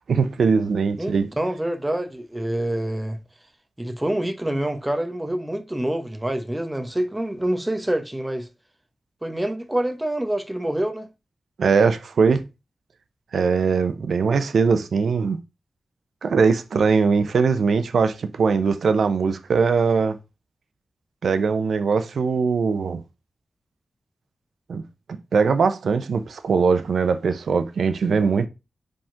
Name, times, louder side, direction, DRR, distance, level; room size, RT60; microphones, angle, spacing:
voice 1, 0.1-1.3 11.6-12.4 13.3-15.4 16.2-20.2 21.2-23.0 24.7-24.8 25.3-28.5, right 5 dB, 85° right, 0.6 m, -21 dB
voice 2, 1.0-3.2 3.8-8.5 9.2-11.1, right 1 dB, 10° right, 0.8 m, -26 dB
5.2 x 3.6 x 5.6 m
wide cardioid pair, 155°, 0 cm